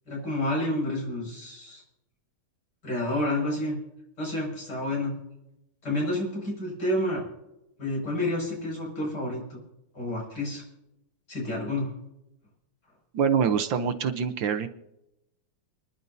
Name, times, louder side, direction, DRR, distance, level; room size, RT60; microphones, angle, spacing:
voice 1, 0.1-1.8 2.8-3.8 4.2-5.2 5.8-7.2 7.8-9.6 9.9-10.6 11.3-11.9, left 1 dB, 55° left, -2 dB, 6.8 m, -29 dB
voice 2, 13.1-14.7, right 7 dB, 70° right, 8 dB, 1.5 m, -25 dB
30.0 x 11.0 x 2.7 m, 0.87 s
omnidirectional pair, 2.2 m